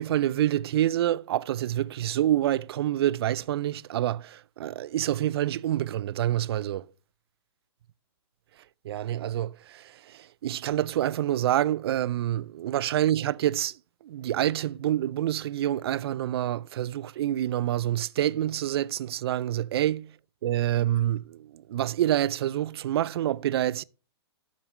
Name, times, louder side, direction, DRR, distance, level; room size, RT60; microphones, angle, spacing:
voice 1, 0.0-6.9 8.9-13.7 14.0-20.1 20.4-23.8, right 12 dB, 65° right, 0.4 m, -27 dB
12.5 x 5.3 x 3.2 m
hypercardioid pair, 140°, 14 cm